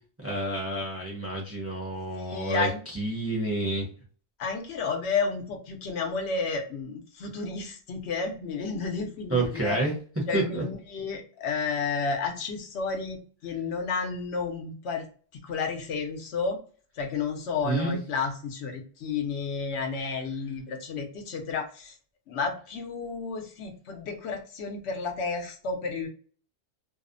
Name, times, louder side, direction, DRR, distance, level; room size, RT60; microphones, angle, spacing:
voice 1, 0.2-3.9 9.3-9.9 10.3-10.6 17.6-17.9, right 2 dB, 15° right, -3 dB, 0.6 m, -29 dB
voice 2, 2.1-2.8 4.4-9.8 10.3-15.0 15.3-16.6 16.9-21.9 22.3-26.1, left 4 dB, 75° left, 4 dB, 0.9 m, -31 dB
2.6 x 2.0 x 2.5 m, 0.42 s
omnidirectional pair, 1.2 m